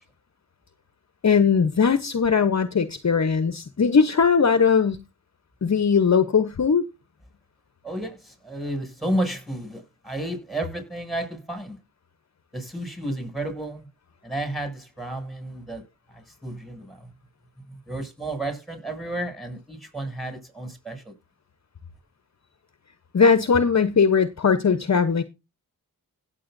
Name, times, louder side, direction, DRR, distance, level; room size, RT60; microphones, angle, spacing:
voice 1, 1.2-5.0 5.6-6.8 23.1-25.2, left 6 dB, 45° left, 0.9 m, -19 dB
voice 2, 7.8-11.8 12.5-13.9 14.2-15.8 16.1-17.1 17.9-21.1, right 1 dB, ahead, 6.7 m, -32 dB
17.0 x 7.9 x 2.6 m
cardioid pair, 50°, 38 cm